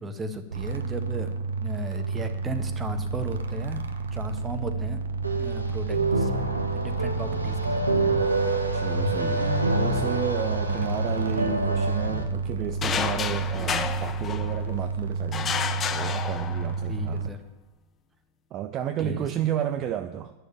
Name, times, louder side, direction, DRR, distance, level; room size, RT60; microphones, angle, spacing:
voice 1, 0.0-5.0 5.4-6.4 6.7-7.8 10.7-10.9 16.9-17.4 19.0-19.3, right 1 dB, 15° right, 7 dB, 1.3 m, -36 dB
sound 1, 0.5-17.3, right 4 dB, 65° right, 1.0 m, -31 dB
sound 2, 5.2-12.2, right 2 dB, 85° right, 1.3 m, -27 dB
voice 2, 8.7-15.6 15.9-17.3 18.5-20.3, right 11 dB, 35° right, 8 dB, 0.6 m, -32 dB
sound 3, 12.8-14.8 15.3-16.9, left 7 dB, 25° left, 0.7 m, -30 dB
10.5 x 6.6 x 9.0 m, 1.0 s
figure-of-eight pair, 90°, 0 cm